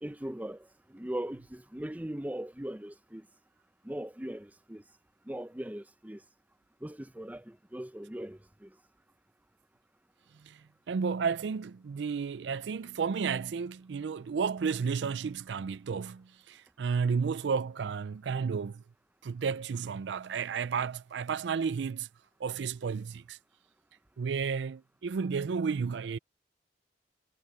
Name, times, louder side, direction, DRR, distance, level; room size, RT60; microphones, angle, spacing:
voice 1, 0.0-3.3 3.8-4.8 5.2-6.2 6.8-8.8, right 1 dB, 10° right, 0.7 m, -39 dB
voice 2, 10.4-18.8 19.2-22.1 22.4-23.4 24.2-26.2, right 5 dB, 80° right, 0.4 m, -32 dB
head